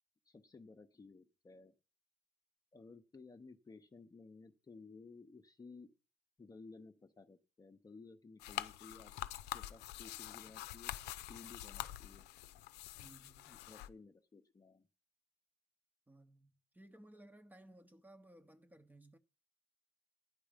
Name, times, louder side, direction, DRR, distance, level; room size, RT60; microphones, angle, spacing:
voice 1, 0.3-1.7 2.7-5.9 6.4-9.1 9.5-10.9 11.3-12.3 13.5-14.9, left 4 dB, 20° left, 0.9 m, -56 dB
sound 1, 8.4-13.9, left 14 dB, 80° left, 0.6 m, -46 dB
voice 2, 13.0-13.5 16.1-19.2, right 1 dB, 10° right, 0.9 m, -60 dB
11.0 x 9.8 x 5.1 m
cardioid pair, 110°, 17 cm